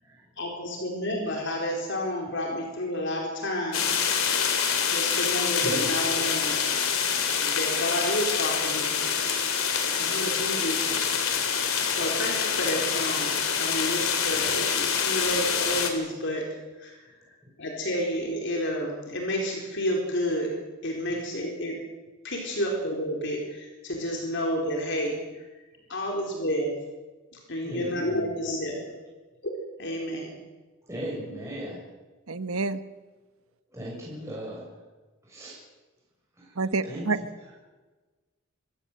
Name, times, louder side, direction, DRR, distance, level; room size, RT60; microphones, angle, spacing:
voice 1, 0.4-4.1 4.9-6.6 7.4-9.2 10.0-11.1 11.9-16.5 16.8-17.0 17.6-20.5 20.8-21.8 22.2-25.2 25.9-26.8 27.3-28.8 29.4-29.5 29.8-30.3, equal, 55° left, 0 dB, 4.4 m, -30 dB
sound 1, 3.7-15.9, left 7 dB, 75° left, 3.3 m, -26 dB
voice 2, 4.4-4.8 5.3-5.9 9.6-10.0 10.3-10.4 17.4-17.5 21.0-21.2 27.6-28.3 30.8-31.9 33.7-34.8 35.2-35.6 36.3-37.0 37.4-37.5, equal, 15° right, -5 dB, 6.5 m, -39 dB
voice 3, 32.3-32.8 36.6-37.2, right 3 dB, 80° right, 12 dB, 1.2 m, -27 dB
25.5 x 15.0 x 8.1 m, 1.3 s
head